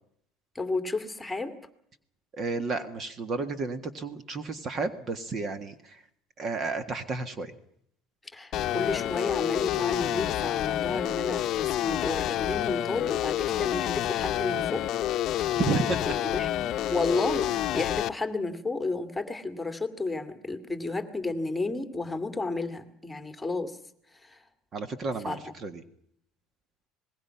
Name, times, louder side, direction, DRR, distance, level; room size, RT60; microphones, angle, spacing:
voice 1, 0.5-1.6 8.3-14.9 15.8-16.5 16.9-23.8 24.2-24.4 25.2-25.5, left 3 dB, 5° left, 9 dB, 2.3 m, -32 dB
voice 2, 2.3-6.0 6.4-7.5 15.5-16.0 24.7-25.8, right 3 dB, 35° right, 11 dB, 1.7 m, -31 dB
sound 1, 8.5-18.1, left 12 dB, 50° left, 0.8 m, -28 dB
26.5 x 20.5 x 5.8 m, 0.71 s
supercardioid pair, 120°, 0 cm